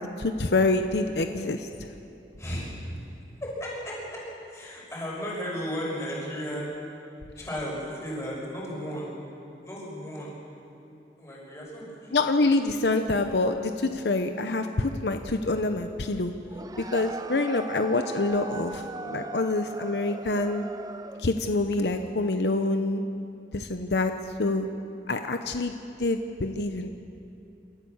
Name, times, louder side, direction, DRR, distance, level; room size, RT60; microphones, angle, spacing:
voice 1, 0.0-1.7 12.1-16.3 16.9-20.7 21.2-23.0 23.5-24.1 24.4-24.7 25.1-26.9, left 2 dB, 75° left, 7 dB, 0.9 m, -26 dB
voice 2, 2.4-2.7 3.4-4.2 4.5-6.7 7.4-9.1 9.6-10.3 11.2-12.2 12.6-12.8, equal, 15° left, -4 dB, 5.8 m, -34 dB
sound 1, 16.5-21.4, right 3 dB, 20° right, 0.4 m, -39 dB
27.5 x 13.5 x 7.2 m, 2.6 s
head